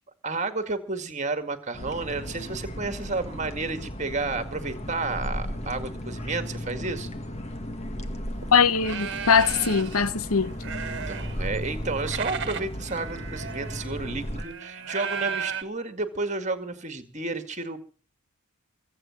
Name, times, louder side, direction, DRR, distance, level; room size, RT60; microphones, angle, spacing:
voice 1, 0.2-7.1 10.8-17.8, right 3 dB, 30° right, 2.1 m, -31 dB
sound 1, 1.7-14.4, equal, 30° left, 1.9 m, -35 dB
sound 2, 8.3-8.5 8.8-10.0 10.4-11.5 11.8-15.6, right 6 dB, 50° right, 1.6 m, -35 dB
voice 2, 8.5-10.5, left 6 dB, 75° left, 0.9 m, -21 dB
23.0 x 8.7 x 7.2 m
head